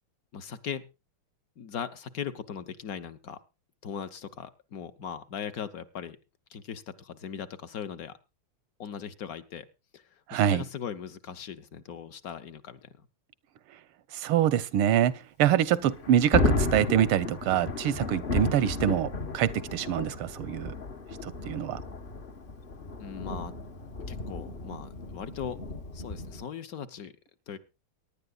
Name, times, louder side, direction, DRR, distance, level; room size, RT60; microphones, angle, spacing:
voice 1, 0.3-0.8 1.6-3.4 3.8-6.2 6.5-8.2 8.8-9.7 9.9-13.1 23.0-23.5 24.1-25.6 25.9-27.1 27.5-27.6, left 8 dB, 55° left, 1.1 m, -39 dB
voice 2, 10.3-10.6 14.1-20.7 21.2-21.8, right 11 dB, 85° right, 1.7 m, -25 dB
Thunder, 15.7-26.4, left 2 dB, 40° left, 0.8 m, -33 dB
23.0 x 10.5 x 2.4 m
omnidirectional pair, 2.3 m